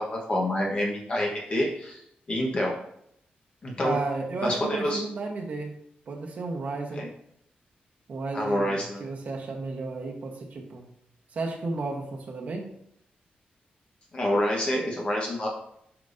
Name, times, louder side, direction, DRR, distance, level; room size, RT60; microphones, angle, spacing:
voice 1, 0.0-2.0 2.3-2.7 3.6-3.9 4.4-5.0 7.0-7.1 8.3-9.1 14.1-15.5, left 1 dB, 35° left, -1 dB, 1.2 m, -27 dB
voice 2, 3.8-5.8 6.1-7.1 8.1-10.9 11.3-12.7, right 3 dB, 50° right, 0 dB, 1.1 m, -33 dB
8.8 x 5.1 x 2.6 m, 0.71 s
wide cardioid pair, 170°, 3 cm